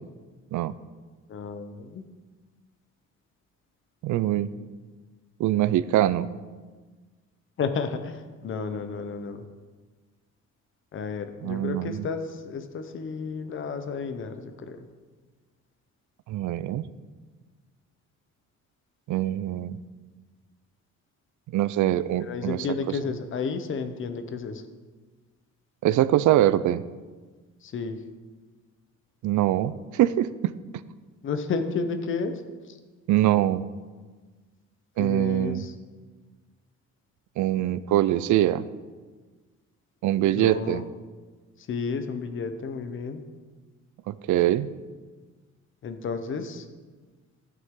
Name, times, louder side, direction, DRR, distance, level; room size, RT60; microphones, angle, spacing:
voice 1, 1.3-2.0 7.6-9.4 10.9-14.9 22.2-24.6 27.6-28.0 31.2-32.4 35.0-35.7 40.2-40.8 41.7-43.2 45.8-46.6, left 5 dB, 45° left, 8 dB, 0.8 m, -32 dB
voice 2, 4.0-4.5 5.4-6.3 11.4-12.1 16.3-16.8 19.1-19.8 21.5-23.0 25.8-26.8 29.2-30.5 33.1-33.7 35.0-35.6 37.4-38.6 40.0-40.8 44.1-44.7, right 13 dB, 85° right, 16 dB, 0.5 m, -23 dB
12.5 x 9.3 x 3.7 m, 1.4 s
cardioid pair, 165°, 29 cm